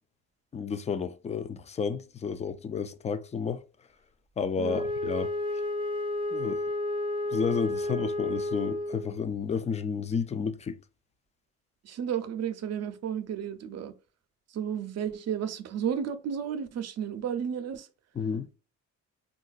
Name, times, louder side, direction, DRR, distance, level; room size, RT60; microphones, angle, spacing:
voice 1, 0.5-3.6 4.4-5.3 6.3-6.6 7.3-10.8 18.2-18.5, left 6 dB, 25° left, 0.3 m, -31 dB
Wind instrument woodwind instrument, 4.6-9.2, left 1 dB, 15° right, 0.7 m, -31 dB
voice 2, 4.6-4.9 11.8-14.0 14.5-17.9, right 8 dB, 55° right, 0.6 m, -32 dB
3.8 x 2.3 x 2.3 m
cardioid pair, 90°, 30 cm